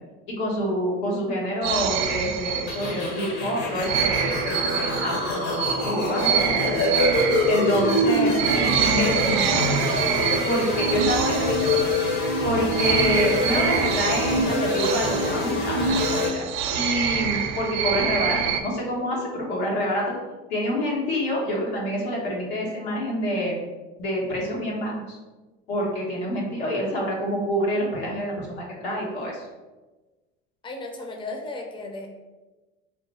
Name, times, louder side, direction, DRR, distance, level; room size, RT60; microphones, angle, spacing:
voice 1, 0.3-5.2 5.5-6.7 7.5-9.8 10.4-11.8 12.4-15.9 16.2-16.4 16.7-20.1 20.5-23.6 24.0-25.2 25.7-29.5, equal, 90° left, -3 dB, 1.3 m, -27 dB
sound 1, 1.6-3.2 3.8-12.4 12.7-18.6, right 8 dB, 65° right, 0.5 m, -26 dB
sound 2, 2.7-16.3, left 1 dB, 65° left, 1.1 m, -25 dB
voice 2, 30.6-32.1, left 2 dB, 15° left, 2 dB, 0.6 m, -35 dB
3.9 x 2.1 x 4.1 m, 1.2 s
supercardioid pair, 95°, 30 cm